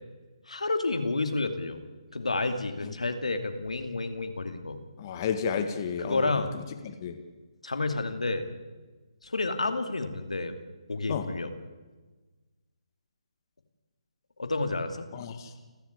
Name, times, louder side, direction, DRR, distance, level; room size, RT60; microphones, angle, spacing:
voice 1, 0.5-1.8 2.1-4.8 6.0-6.5 7.6-8.5 9.2-10.5 10.9-11.5 14.4-15.1, left 3 dB, 80° left, 8 dB, 2.6 m, -30 dB
voice 2, 5.0-6.3 6.8-7.2 11.1-11.3 15.1-15.5, left 7 dB, 35° left, 7 dB, 1.8 m, -31 dB
30.0 x 12.0 x 8.1 m, 1.3 s
figure-of-eight pair, 145°, 4 cm